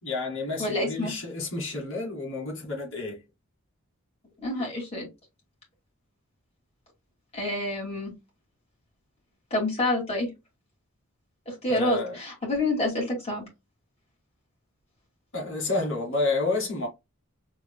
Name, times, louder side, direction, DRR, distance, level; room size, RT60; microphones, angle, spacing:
voice 1, 0.0-3.2 11.7-12.2 15.3-16.9, left 3 dB, 60° left, 2.1 m, -30 dB
voice 2, 0.6-1.1 4.4-5.1 7.3-8.1 9.5-10.3 11.5-13.5, left 1 dB, 30° left, 2.4 m, -28 dB
4.7 x 3.2 x 2.2 m
head